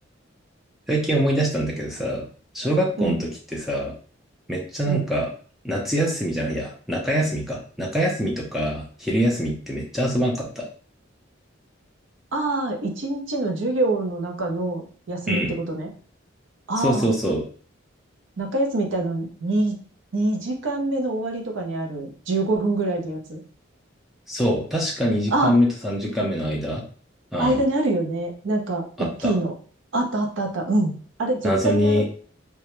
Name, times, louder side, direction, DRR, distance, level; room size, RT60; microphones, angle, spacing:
voice 1, 0.9-2.3 2.5-3.9 4.5-5.3 5.6-10.7 15.3-15.5 16.8-17.4 24.3-26.8 27.3-27.6 29.0-29.3 31.4-32.0, equal, ahead, -3 dB, 0.4 m, -24 dB
voice 2, 12.3-15.9 16.7-17.1 18.4-19.8 20.1-23.4 25.3-25.5 27.4-29.5 29.9-32.1, right 2 dB, 75° right, 3 dB, 0.6 m, -25 dB
2.2 x 2.0 x 2.9 m, 0.43 s
head